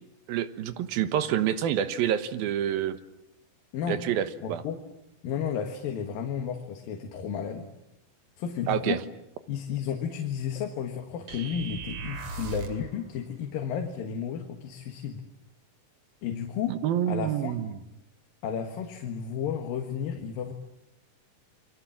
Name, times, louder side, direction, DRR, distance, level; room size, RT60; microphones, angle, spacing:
voice 1, 0.3-3.0 3.9-4.6 8.7-9.0 16.7-17.8, right 10 dB, 85° right, 11 dB, 3.0 m, -27 dB
voice 2, 4.4-4.8 5.2-7.7 8.4-9.0 9.5-15.2 16.2-16.8 17.1-17.5 18.4-20.5, left 8 dB, 75° left, 5 dB, 3.3 m, -32 dB
sound 1, 11.3-12.9, right 4 dB, 60° right, 3.9 m, -37 dB
29.0 x 24.0 x 7.5 m, 0.85 s
omnidirectional pair, 4.2 m